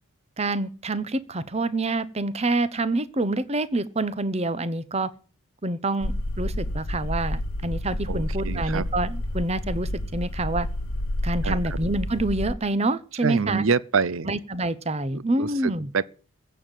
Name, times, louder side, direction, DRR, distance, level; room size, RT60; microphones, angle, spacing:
voice 1, 0.4-5.1 5.6-6.1 6.4-10.7 11.2-13.7 14.3-15.9, right 2 dB, 30° right, 0.8 m, -27 dB
sound 1, 6.0-12.5, left 1 dB, 75° left, 1.2 m, -29 dB
voice 2, 8.1-8.8 11.4-11.6 13.2-14.3 15.1-16.0, right 5 dB, 65° right, 0.7 m, -26 dB
15.5 x 7.0 x 9.1 m
head